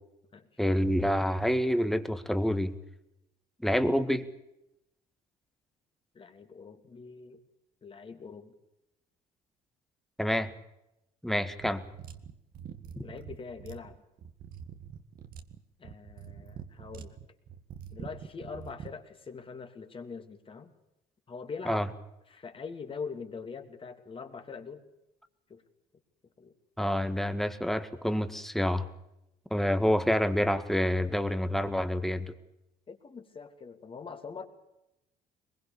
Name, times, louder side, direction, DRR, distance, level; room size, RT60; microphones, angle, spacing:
voice 1, 0.6-2.7 3.6-4.2 10.2-10.5 11.2-11.8 21.7-21.9 26.8-28.9 29.5-32.3, equal, ahead, 10 dB, 1.8 m, -27 dB
voice 2, 6.1-7.4 7.8-8.5 13.0-14.0 15.8-17.2 17.9-20.7 21.3-21.8 22.3-24.8 25.5-25.6 26.4-26.5 32.9-34.4, left 5 dB, 30° left, 6 dB, 3.0 m, -43 dB
sound 1, 11.6-19.0, right 8 dB, 55° right, 2.0 m, -45 dB
22.5 x 21.5 x 7.0 m, 0.87 s
cardioid pair, 110°, 17 cm